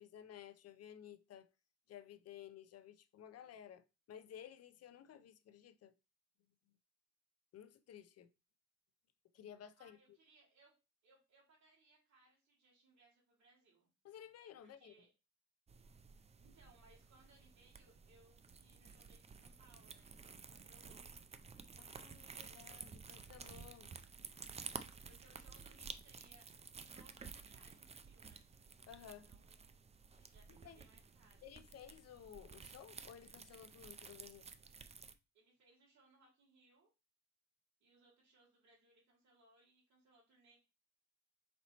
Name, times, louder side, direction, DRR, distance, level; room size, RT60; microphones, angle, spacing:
voice 1, 0.0-1.5 1.9-5.9 7.5-8.3 9.3-10.2 14.0-14.9 21.8-23.9 28.9-29.3 30.1-30.3 30.6-30.8 31.4-34.5, left 9 dB, 55° left, 0.5 m, -55 dB
voice 2, 9.8-10.7 11.0-13.9 14.6-15.1 16.4-21.0 25.1-26.5 26.7-28.5 29.2-29.6 30.3-31.5 35.3-36.9 37.8-40.6, right 2 dB, 65° right, 2.3 m, -69 dB
sound 1, 15.7-35.1, right 5 dB, 20° right, 0.4 m, -53 dB
4.2 x 2.9 x 4.1 m
cardioid pair, 90°, 30 cm